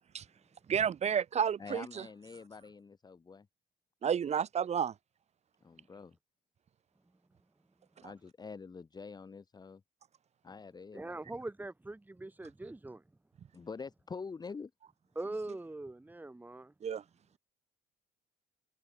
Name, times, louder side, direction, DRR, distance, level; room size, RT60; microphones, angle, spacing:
voice 1, 0.7-2.0 4.0-4.9 16.8-17.0, right 8 dB, 40° right, 1.2 m, -31 dB
voice 2, 1.6-3.5 5.6-6.2 8.0-9.8 10.4-11.2 13.5-14.7, left 5 dB, 25° left, 1.4 m, -46 dB
voice 3, 10.9-13.0 15.1-16.7, right 2 dB, 10° right, 2.9 m, -42 dB
cardioid pair, 110°, 17 cm